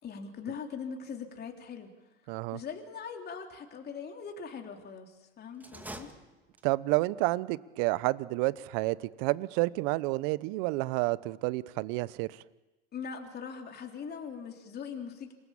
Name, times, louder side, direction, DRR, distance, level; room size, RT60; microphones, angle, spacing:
voice 1, 0.0-1.9 2.5-6.1 12.9-15.3, left 6 dB, 30° left, 3.6 m, -41 dB
voice 2, 2.3-2.6 6.6-12.4, right 21 dB, 55° right, 1.0 m, -30 dB
sound 1, 5.5-6.9, right 1 dB, 5° right, 2.2 m, -46 dB
27.0 x 21.5 x 7.2 m
hypercardioid pair, 95°, 32 cm